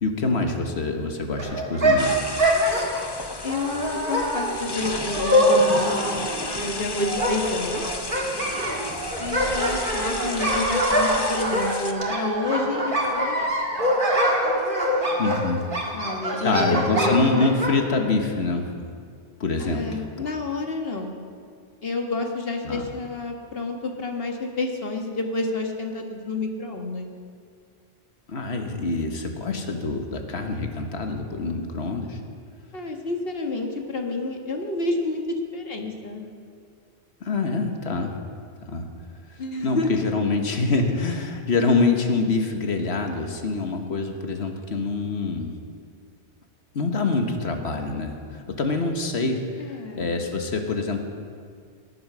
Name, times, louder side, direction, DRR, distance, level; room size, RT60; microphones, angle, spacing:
voice 1, 0.0-2.2 15.2-15.6 16.4-18.8 19.4-20.3 22.6-22.8 28.3-32.2 37.2-38.1 38.7-38.8 39.6-45.5 46.7-51.0, left 3 dB, 80° left, 4 dB, 1.5 m, -25 dB
sound 1, 1.4-17.8, equal, 50° right, 2.1 m, -24 dB
sound 2, 2.0-11.9, left 3 dB, 25° left, 0.8 m, -33 dB
voice 2, 3.4-6.2 6.5-7.8 9.2-13.5 15.9-17.2 19.6-21.2 21.8-27.1 32.7-35.2 35.5-36.3 39.4-40.0 49.6-50.1, left 2 dB, 65° left, 3 dB, 1.7 m, -29 dB
19.5 x 8.6 x 6.1 m, 2.1 s
omnidirectional pair, 1.1 m